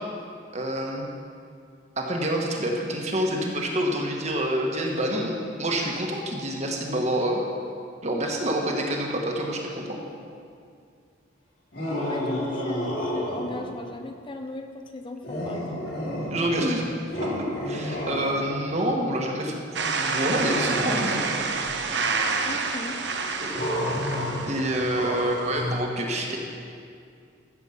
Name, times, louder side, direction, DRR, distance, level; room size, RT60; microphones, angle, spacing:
voice 1, 0.5-1.1 2.0-7.4 8.0-10.0 16.3-16.9 17.2-19.5 20.0-21.5 23.4-23.5 24.5-26.4, right 1 dB, 35° right, 0 dB, 1.4 m, -27 dB
sound 1, 11.7-13.8 15.2-16.7 17.1-18.8 20.3-21.4 23.5-25.8, left 1 dB, 55° left, 3.5 m, -30 dB
voice 2, 12.1-15.9 22.4-23.0, left 2 dB, 25° left, 5 dB, 0.5 m, -37 dB
sound 2, 19.7-25.5, right 4 dB, 60° right, 0.9 m, -28 dB
14.5 x 7.3 x 5.6 m, 2.4 s
head